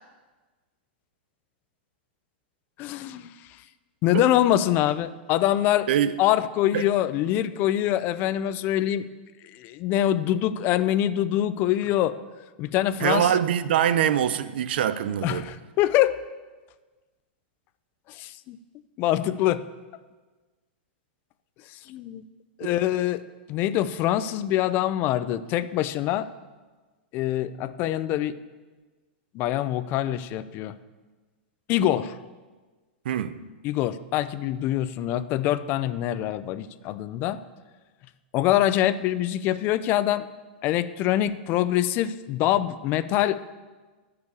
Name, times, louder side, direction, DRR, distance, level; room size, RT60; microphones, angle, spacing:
voice 1, 2.8-3.3 4.0-5.9 6.2-9.1 9.4-12.2 12.6-13.4 15.2-16.2 18.1-18.6 19.0-19.6 21.7-22.2 22.6-23.2 23.5-26.3 27.1-28.4 29.3-30.8 31.7-32.2 33.6-37.4 38.3-40.3 40.6-43.4, left 12 dB, 35° left, 14 dB, 0.5 m, -24 dB
voice 2, 13.0-15.4 22.6-22.7 33.0-33.3, right 10 dB, 70° right, 14 dB, 0.7 m, -23 dB
9.7 x 6.8 x 8.3 m, 1.3 s
supercardioid pair, 145°, 6 cm